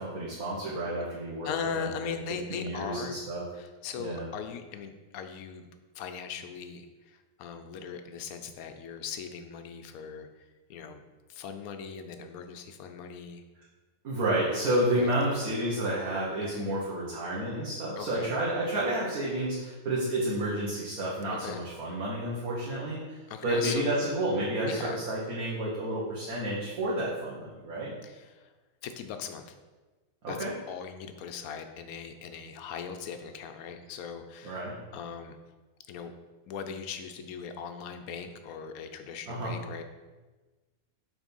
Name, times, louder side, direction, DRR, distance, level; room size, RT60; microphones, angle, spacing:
voice 1, 0.0-1.5 1.7-2.1 2.5-3.4 4.0-4.3 14.0-27.9 30.2-30.5 34.4-34.7 39.3-39.6, right 1 dB, 85° right, -7 dB, 1.7 m, -30 dB
voice 2, 1.4-3.2 3.5-5.7 5.9-10.3 10.7-11.0 11.3-13.4 14.9-15.1 16.4-16.6 18.0-18.3 21.3-21.6 23.3-23.9 24.6-25.0 28.0-28.5 28.8-29.5 30.3-30.4 30.7-35.4 35.9-36.1 36.5-39.8, left 7 dB, 85° left, 7 dB, 1.1 m, -39 dB
6.2 x 4.1 x 5.3 m, 1.3 s
omnidirectional pair, 1.5 m